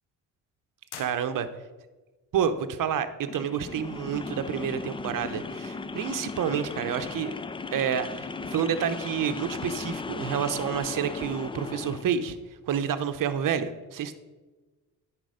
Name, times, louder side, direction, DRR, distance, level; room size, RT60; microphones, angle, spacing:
sound 1, 0.9-1.9, left 9 dB, 70° left, 0.8 m, -46 dB
voice 1, 1.0-1.5 2.3-7.4 7.7-12.4 12.7-14.1, right 8 dB, 55° right, 11 dB, 0.8 m, -29 dB
sound 2, 3.2-12.1, left 4 dB, 15° left, 0.4 m, -37 dB
10.0 x 4.4 x 5.0 m, 1.2 s
supercardioid pair, 60°, 40 cm